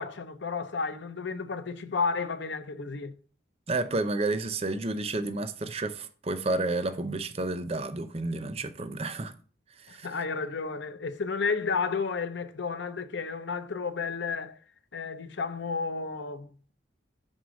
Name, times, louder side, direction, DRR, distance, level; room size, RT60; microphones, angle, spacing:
voice 1, 0.0-3.1 9.9-14.6 14.9-16.7, left 4 dB, 75° left, 0.7 m, -32 dB
voice 2, 3.7-9.3 9.8-10.1, right 2 dB, 30° right, 0.5 m, -31 dB
6.2 x 3.8 x 6.3 m
head